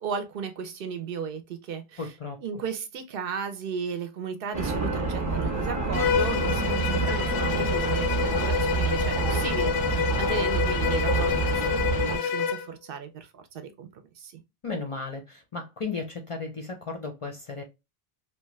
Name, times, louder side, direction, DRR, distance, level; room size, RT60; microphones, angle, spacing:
voice 1, 0.0-2.1 2.4-14.3, right 6 dB, 65° right, 0.7 m, -35 dB
voice 2, 2.0-2.4 14.6-17.6, left 4 dB, 40° left, 0.5 m, -35 dB
sound 1, 4.5-12.2, right 3 dB, 20° right, 0.6 m, -27 dB
Bowed string instrument, 5.9-12.7, left 7 dB, 90° left, 0.9 m, -28 dB
2.9 x 2.3 x 3.0 m
omnidirectional pair, 1.0 m